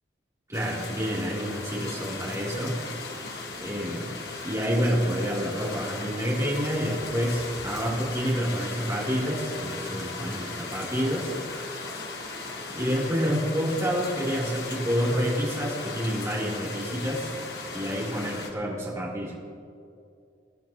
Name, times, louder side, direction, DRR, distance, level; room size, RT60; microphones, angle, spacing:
sound 1, 0.5-18.5, left 3 dB, 65° left, 1.7 m, -37 dB
voice 1, 0.5-3.1 3.6-4.1 4.4-11.3 12.7-17.3 17.7-19.4, equal, 20° right, -6 dB, 3.4 m, -28 dB
23.0 x 10.5 x 3.0 m, 2.4 s
head